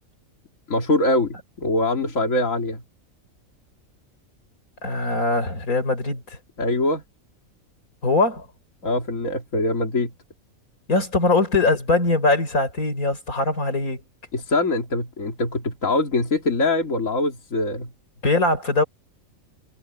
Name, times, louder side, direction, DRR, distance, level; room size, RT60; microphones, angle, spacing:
voice 1, 0.7-2.8 6.6-7.0 8.8-10.1 14.3-17.9, left 2 dB, 65° left, 3.1 m, -23 dB
voice 2, 4.8-6.4 8.0-8.5 10.9-14.0 18.2-18.8, left 2 dB, 85° left, 5.3 m, -21 dB
omnidirectional pair, 1.5 m